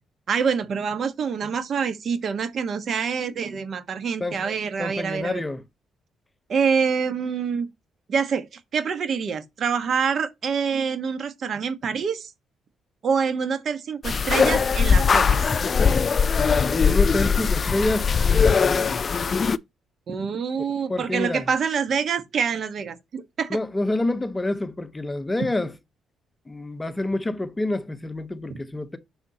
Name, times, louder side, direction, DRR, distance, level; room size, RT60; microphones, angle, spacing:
voice 1, 0.3-5.4 6.5-7.7 8.1-12.3 13.0-15.4 20.1-23.6 28.5-28.6, right 6 dB, 55° right, 1.3 m, -26 dB
voice 2, 4.8-5.6 16.7-19.0 20.6-21.5 23.5-25.7 26.5-29.0, left 2 dB, 15° left, 0.9 m, -28 dB
sound 1, 14.0-19.6, left 5 dB, 40° left, 0.5 m, -20 dB
7.1 x 6.4 x 2.9 m
cardioid pair, 90°, 0 cm